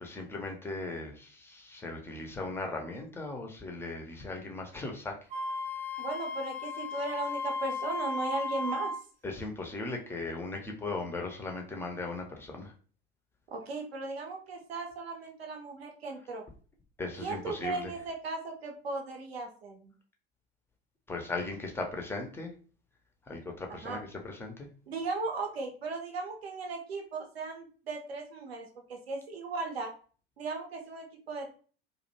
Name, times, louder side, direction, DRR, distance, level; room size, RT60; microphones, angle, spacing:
voice 1, 0.0-5.2 9.2-12.7 17.0-17.9 21.1-22.5 23.3-24.7, left 3 dB, 10° left, 2 dB, 0.3 m, -38 dB
Wind instrument woodwind instrument, 5.3-9.0, left 3 dB, 25° right, 0.7 m, -35 dB
voice 2, 6.0-9.0 13.5-16.4 17.2-19.9 23.7-24.0 24.9-29.9 30.4-31.5, right 3 dB, 80° right, 3 dB, 0.5 m, -37 dB
2.4 x 2.1 x 2.7 m, 0.41 s
figure-of-eight pair, 70°, 30 cm